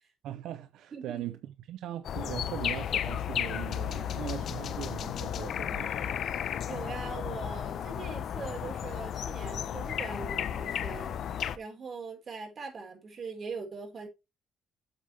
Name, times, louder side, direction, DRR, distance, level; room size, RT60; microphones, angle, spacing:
voice 1, 0.2-6.2, right 12 dB, 85° right, 0.8 m, -40 dB
voice 2, 0.9-1.2 6.6-14.1, right 4 dB, 45° right, 5.1 m, -41 dB
sound 1, 2.0-11.6, left 9 dB, 65° left, 1.0 m, -34 dB
8.5 x 8.2 x 3.5 m
cardioid pair, 90°, 0 cm